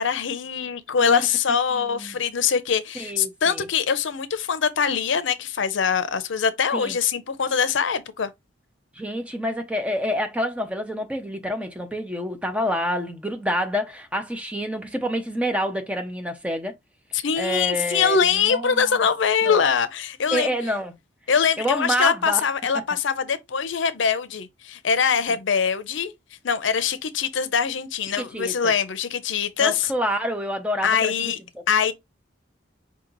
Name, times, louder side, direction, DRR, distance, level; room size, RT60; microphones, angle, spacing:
voice 1, 0.0-8.3 17.1-20.5 21.3-26.1 26.4-29.9 30.8-31.4 31.7-31.9, left 6 dB, 75° left, 0.6 m, -23 dB
voice 2, 1.8-2.2 2.9-3.7 6.7-7.0 9.0-16.7 17.4-19.0 19.4-19.7 20.3-20.9 21.6-22.4 28.2-28.7 29.6-31.3, equal, 5° right, 0.7 m, -27 dB
4.8 x 2.8 x 3.9 m
head